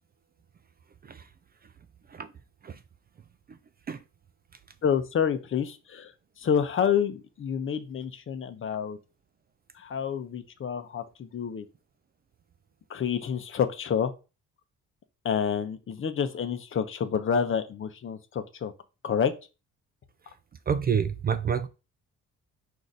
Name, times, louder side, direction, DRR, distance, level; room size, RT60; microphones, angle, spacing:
voice 1, 4.8-6.1 6.4-9.0 9.7-11.7 12.9-14.1 15.2-18.7 19.0-19.3, left 7 dB, 45° left, 0.7 m, -28 dB
voice 2, 20.7-21.7, right 7 dB, 30° right, 0.4 m, -28 dB
4.8 x 2.6 x 4.0 m
cardioid pair, 90°, 30 cm